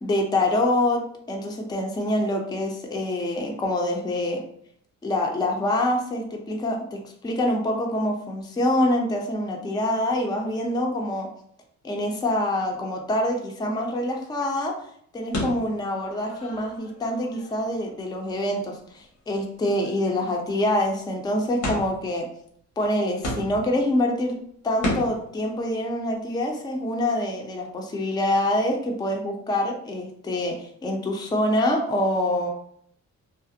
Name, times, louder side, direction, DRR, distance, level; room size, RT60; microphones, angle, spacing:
voice 1, 0.0-4.4 5.0-11.3 11.8-14.7 15.1-22.3 22.8-24.4 24.6-32.5, left 1 dB, 15° left, 1 dB, 0.4 m, -25 dB
sound 1, 15.3-17.9 18.3-18.4 19.0-19.1 19.4-19.5 19.7-20.7 21.6-22.1 22.8-22.9 23.2-23.8 24.8-25.3, left 1 dB, 80° left, 1.0 m, -33 dB
2.4 x 2.0 x 2.6 m, 0.65 s
cardioid pair, 90°, 30 cm